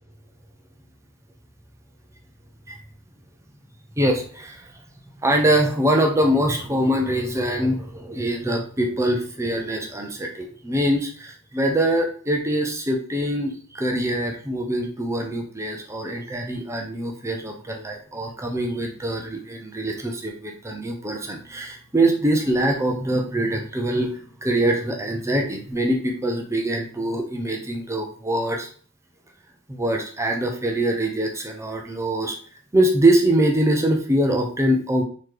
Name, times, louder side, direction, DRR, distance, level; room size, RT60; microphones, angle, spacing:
voice 1, 4.0-4.7 5.2-24.1 24.4-28.7 29.7-32.4 32.7-35.0, right 1 dB, 15° right, 2 dB, 0.5 m, -23 dB
3.9 x 2.9 x 3.2 m, 0.43 s
head